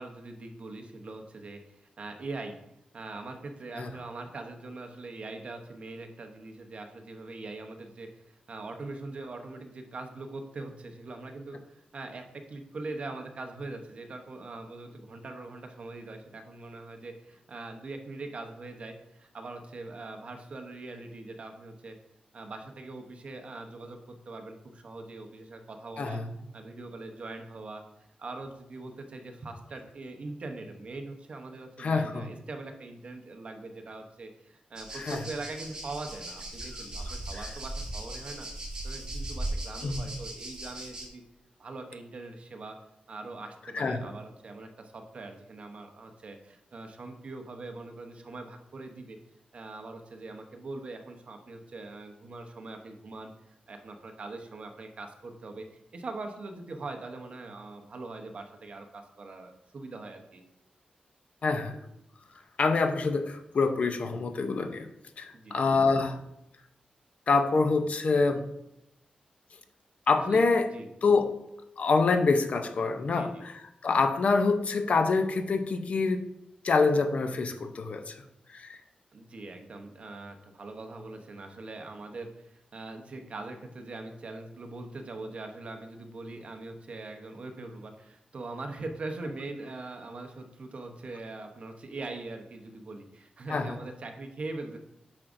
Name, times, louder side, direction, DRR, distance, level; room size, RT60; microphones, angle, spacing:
voice 1, 0.0-1.6 2.0-2.6 2.9-22.0 22.3-26.2 26.5-27.8 28.2-38.5 38.8-41.2 41.6-42.8 43.1-49.2 49.5-53.3 53.7-55.6 55.9-60.4 65.3-65.7 70.2-70.4 70.7-70.9 73.0-73.4 79.1-94.8, right 2 dB, 45° right, 5 dB, 0.8 m, -42 dB
voice 2, 26.0-26.3 31.8-32.3 34.9-35.2 37.3-37.4 39.8-40.1 43.7-44.1 61.4-61.8 62.6-64.9 65.2-66.2 67.3-68.4 70.1-70.7 71.0-71.3 71.8-73.5 73.8-76.2 76.6-78.2 78.5-78.8 93.5-93.8, left 4 dB, 50° left, 7 dB, 0.6 m, -26 dB
sound 1, 34.8-41.1, right 1 dB, 25° right, 2.1 m, -38 dB
8.6 x 6.0 x 2.6 m, 0.82 s
wide cardioid pair, 160°, 3 cm